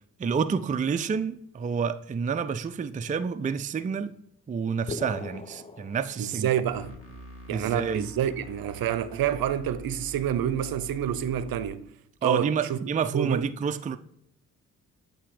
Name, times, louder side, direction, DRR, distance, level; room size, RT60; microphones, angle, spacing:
voice 1, 0.2-4.1 4.5-6.5 7.5-8.1 12.2-14.0, right 6 dB, 20° right, 0.4 m, -29 dB
sound 1, 4.9-6.8, left 3 dB, 15° left, 0.7 m, -40 dB
voice 2, 6.2-6.9 7.5-11.9 12.2-12.8 13.1-13.5, right 10 dB, 60° right, 0.7 m, -28 dB
sound 2, 6.6-11.7, left 1 dB, 35° left, 2.0 m, -45 dB
8.3 x 2.9 x 4.9 m
hypercardioid pair, 40°, 40 cm